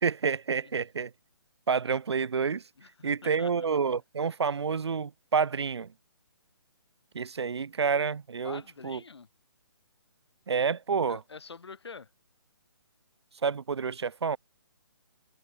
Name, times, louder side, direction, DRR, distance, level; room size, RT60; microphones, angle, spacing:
voice 1, 0.0-1.1 1.7-2.6 3.0-5.9 7.1-9.0 10.5-11.2 13.4-14.4, right 5 dB, 85° right, 0.9 m, -29 dB
voice 2, 2.8-3.7 8.4-9.3 11.1-12.1, left 5 dB, 80° left, 2.3 m, -46 dB
hypercardioid pair, 170°, 14 cm